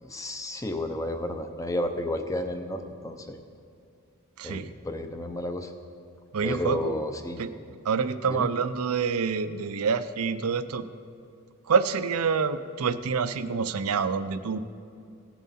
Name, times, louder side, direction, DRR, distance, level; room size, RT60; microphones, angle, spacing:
voice 1, 0.0-3.4 4.4-5.7 6.4-7.4 8.3-8.5, left 1 dB, 15° left, 6 dB, 0.6 m, -32 dB
voice 2, 4.4-4.7 6.3-7.0 7.4-7.5 7.8-10.9 11.7-14.6, right 5 dB, 75° right, 13 dB, 0.5 m, -27 dB
17.5 x 7.2 x 4.2 m, 2.5 s
head